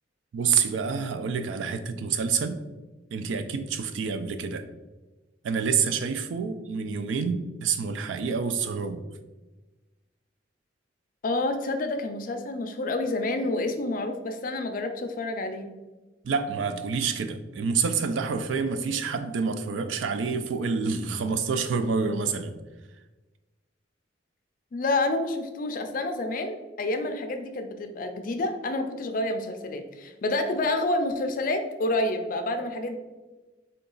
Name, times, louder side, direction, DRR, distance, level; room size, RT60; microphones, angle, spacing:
voice 1, 0.3-2.6 3.1-4.7 5.4-9.0 16.2-22.5, right 5 dB, 85° right, 10 dB, 0.3 m, -27 dB
voice 2, 11.2-15.7 24.7-33.0, left 2 dB, 45° left, 7 dB, 0.4 m, -28 dB
3.8 x 2.3 x 3.8 m, 1.2 s
head